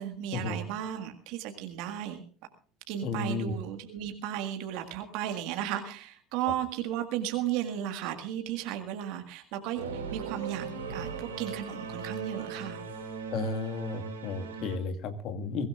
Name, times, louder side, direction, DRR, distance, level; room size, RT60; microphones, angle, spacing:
voice 1, 0.0-2.2 2.9-12.8, right 11 dB, 65° right, 6 dB, 1.7 m, -35 dB
voice 2, 3.0-3.5 13.3-15.7, left 3 dB, 55° left, 7 dB, 1.9 m, -33 dB
Singing / Musical instrument, 9.7-14.8, right 5 dB, 85° right, 4.2 m, -38 dB
23.0 x 16.0 x 2.5 m, 0.43 s
hypercardioid pair, 70°, 0 cm